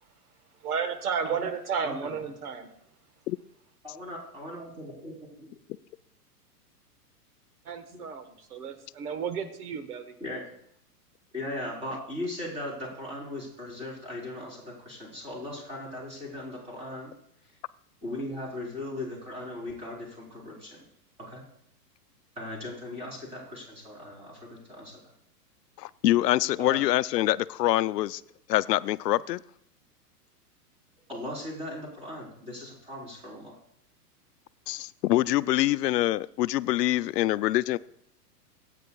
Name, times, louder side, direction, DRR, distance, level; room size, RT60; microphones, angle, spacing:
voice 1, 0.6-2.7 7.7-10.1, right 6 dB, 70° right, 9 dB, 1.4 m, -32 dB
voice 2, 1.8-2.2 3.8-5.5 7.9-8.0 10.2-10.4 11.3-17.1 18.0-20.8 21.2-21.4 22.4-25.0 26.6-26.9 31.1-33.6, left 1 dB, 15° right, -4 dB, 3.9 m, -38 dB
voice 3, 25.8-28.2 28.5-29.4 34.7-37.8, left 15 dB, 85° left, 16 dB, 0.6 m, -25 dB
25.5 x 9.1 x 2.3 m, 0.75 s
supercardioid pair, 165°, 48 cm